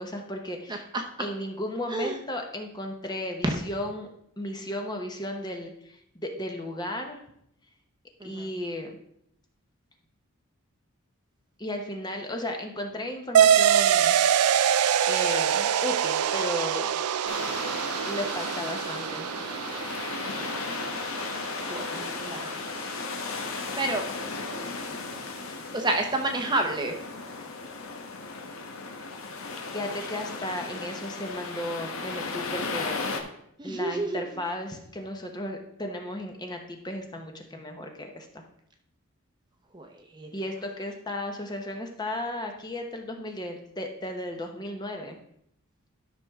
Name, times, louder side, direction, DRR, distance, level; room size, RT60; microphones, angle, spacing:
voice 1, 0.0-0.9 1.2-4.1 4.4-7.2 8.2-9.0 11.6-14.2 15.1-16.9 18.0-19.3 29.7-33.0 33.6-38.4 40.3-45.2, left 1 dB, 20° left, 3 dB, 0.9 m, -35 dB
voice 2, 0.7-1.0 1.9-2.1 3.4-3.6 8.2-8.5 20.7-21.0 21.7-22.6 23.8-24.0 25.2-25.3 25.7-27.0 33.6-34.2 39.7-40.3, right 2 dB, 20° right, 4 dB, 0.8 m, -30 dB
sound 1, 13.3-22.4, right 9 dB, 90° right, 0.4 m, -25 dB
sound 2, 17.3-33.2, left 4 dB, 70° left, 1.1 m, -35 dB
12.0 x 5.8 x 3.6 m, 0.73 s
head